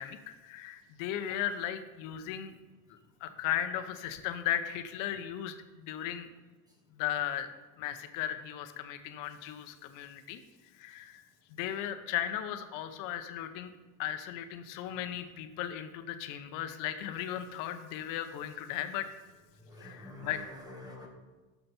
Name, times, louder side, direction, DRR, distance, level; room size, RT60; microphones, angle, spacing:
voice 1, 0.0-2.5 2.9-6.3 6.9-7.5 7.8-10.4 10.8-11.2 11.5-13.7 14.0-19.1 19.8-20.4, left 11 dB, 50° left, 9 dB, 0.9 m, -36 dB
voice 2, 19.6-21.1, left 1 dB, 10° right, 1 dB, 1.8 m, -47 dB
16.0 x 7.0 x 4.4 m, 1.2 s
cardioid pair, 155°, 42 cm